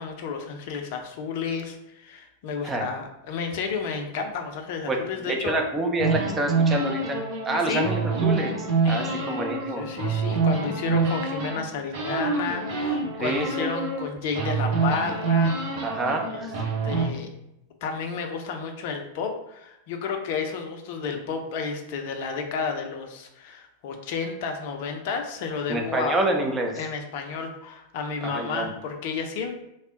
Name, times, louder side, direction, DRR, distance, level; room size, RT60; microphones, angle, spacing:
voice 1, 0.0-5.6 7.6-7.9 8.8-15.6 16.3-16.5 16.8-17.3 17.8-26.3 26.8-29.5, left 5 dB, 50° left, 4 dB, 0.5 m, -31 dB
voice 2, 5.3-9.9 13.2-13.7 15.8-16.6 25.7-26.8 28.2-28.7, right 2 dB, 15° right, 2 dB, 0.6 m, -27 dB
sound 1, 6.0-11.6 11.9-14.1 14.3-17.0, right 4 dB, 50° right, 0.9 m, -26 dB
3.4 x 2.1 x 3.7 m, 0.85 s
figure-of-eight pair, 90°, 0 cm